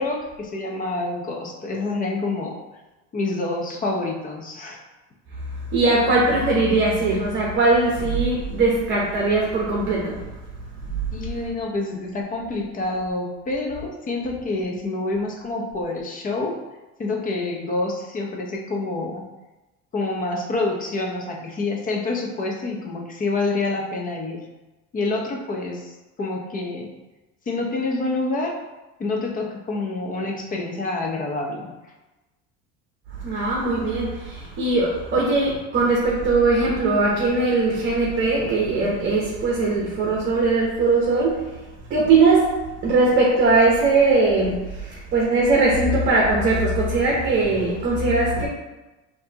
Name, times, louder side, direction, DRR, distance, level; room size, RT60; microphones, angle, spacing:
voice 1, 0.0-2.6 3.1-4.8 11.1-16.6 17.0-19.3 19.9-24.4 24.9-25.9 26.2-26.9 27.5-28.6 29.0-31.7, left 2 dB, 25° left, 0 dB, 0.7 m, -27 dB
voice 2, 5.7-10.3 33.2-41.5 41.9-48.5, right 3 dB, 35° right, -3 dB, 0.9 m, -20 dB
5.6 x 2.8 x 2.8 m, 1.1 s
cardioid pair, 140°, 31 cm